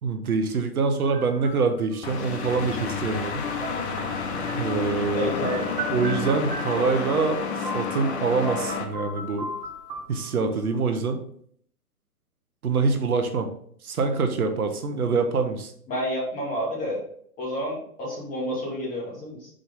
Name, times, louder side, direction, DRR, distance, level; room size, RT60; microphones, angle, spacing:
voice 1, 0.0-3.5 4.5-5.3 5.9-9.5 10.1-11.2 12.6-13.5 13.8-15.7, right 4 dB, 70° right, 7 dB, 1.0 m, -25 dB
sound 1, 1.0-2.0 3.6-8.2 8.4-10.6, right 1 dB, 30° right, 1.4 m, -37 dB
sound 2, 2.0-8.8, left 5 dB, 45° left, 0.9 m, -30 dB
voice 2, 5.1-5.7 15.9-17.0 17.4-19.5, left 1 dB, 15° left, -4 dB, 1.8 m, -29 dB
5.4 x 5.0 x 3.6 m, 0.63 s
figure-of-eight pair, 130°, 46 cm